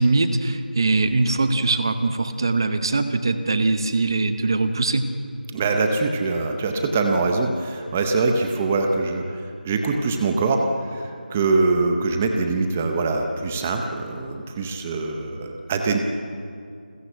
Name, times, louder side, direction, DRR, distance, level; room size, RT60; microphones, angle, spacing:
voice 1, 0.0-5.0, right 3 dB, 25° right, 9 dB, 1.1 m, -21 dB
voice 2, 5.5-16.0, right 3 dB, 10° right, 4 dB, 0.6 m, -23 dB
29.5 x 15.0 x 7.9 m, 2.4 s
figure-of-eight pair, 175°, 5 cm